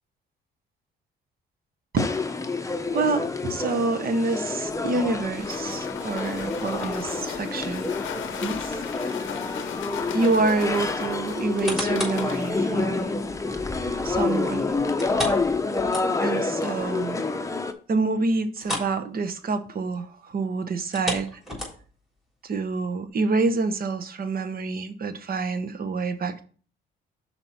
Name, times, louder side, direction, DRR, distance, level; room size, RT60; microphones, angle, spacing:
sound 1, 2.0-17.7, left 3 dB, 15° left, 0.7 m, -28 dB
voice 1, 2.9-7.9 8.4-8.7 10.1-13.1 14.0-14.8 16.2-17.2 17.9-21.4 22.4-26.5, right 3 dB, 50° right, 1.0 m, -27 dB
sound 2, 4.7-13.4, left 10 dB, 75° left, 0.6 m, -39 dB
sound 3, 11.4-12.3 12.8-12.9 15.0-16.4 16.8-16.9 17.3-17.4 18.5-19.0 19.3-19.5 20.8-22.0 22.7-22.8, left 1 dB, ahead, 3.5 m, -32 dB
5.9 x 4.4 x 5.4 m
cardioid pair, 90°, 20 cm